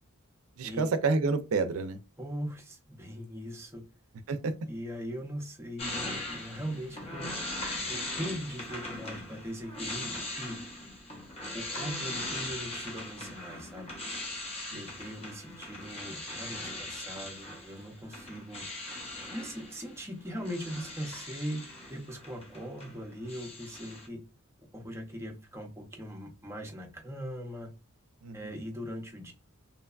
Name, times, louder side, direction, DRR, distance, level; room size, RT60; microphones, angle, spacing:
voice 1, 0.6-2.0 4.3-4.5 14.7-14.8 28.2-28.5, right 4 dB, 80° right, 0.4 m, -29 dB
voice 2, 2.2-3.8 4.7-7.3 7.9-10.6 11.5-13.9 14.7-18.6 19.3-24.2 24.7-27.7 28.3-29.3, equal, 15° right, 0.6 m, -40 dB
sound 1, 5.8-23.0 23.2-24.1, left 1 dB, 30° left, 0.7 m, -40 dB
2.9 x 2.2 x 2.3 m
head